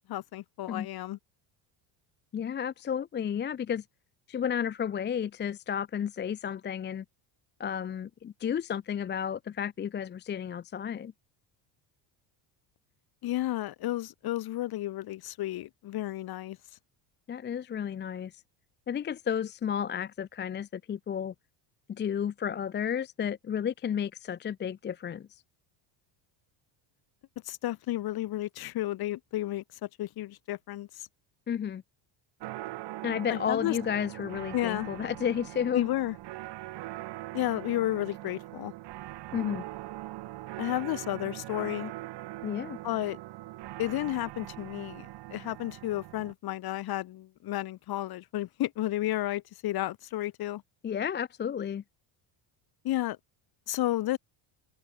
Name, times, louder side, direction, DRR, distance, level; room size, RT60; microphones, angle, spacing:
voice 1, 0.1-1.2 13.2-16.6 27.5-31.1 33.3-33.8 34.5-34.9 35.7-36.2 37.3-38.7 40.6-41.9 42.8-43.2 43.8-50.6 52.8-53.2 53.7-54.2, left 15 dB, 45° left, 1.8 m, -32 dB
voice 2, 2.3-3.8 4.3-7.0 7.6-11.1 17.3-18.3 18.9-21.3 21.9-25.4 31.5-31.8 33.0-35.9 39.3-39.6 42.4-42.8 50.8-51.8, left 8 dB, 20° left, 0.6 m, -32 dB
sound 1, 32.4-46.3, right 17 dB, 55° right, 2.2 m, -41 dB
open air
cardioid pair, 155°, 50 cm